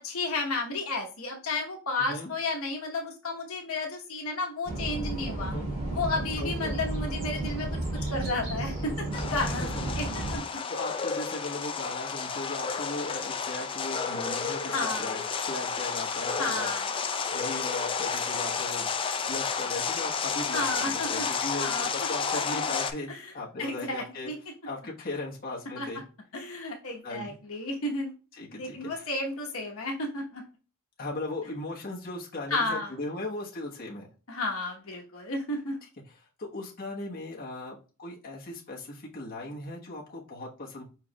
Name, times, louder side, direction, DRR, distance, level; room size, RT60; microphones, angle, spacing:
voice 1, 0.0-5.5 5.9-10.0 10.3-10.4 14.7-15.1 16.4-16.9 20.5-21.2 21.5-21.9 23.1-23.3 23.6-24.4 25.8-25.9 26.3-28.1 28.5-30.4 32.5-32.9 34.3-35.8, left 2 dB, 70° left, 1 dB, 1.0 m, -32 dB
voice 2, 2.0-2.3 5.4-5.7 6.4-6.8 9.5-9.8 10.7-16.7 17.3-18.9 19.3-24.3 24.7-26.0 27.0-27.3 28.3-29.0 31.0-34.1 36.4-40.8, left 2 dB, 40° left, -4 dB, 1.1 m, -38 dB
sound 1, 4.6-10.4, right 2 dB, 25° right, 2.5 m, -33 dB
sound 2, 9.1-22.9, left 5 dB, 25° left, 0.3 m, -31 dB
4.9 x 4.6 x 2.2 m, 0.35 s
head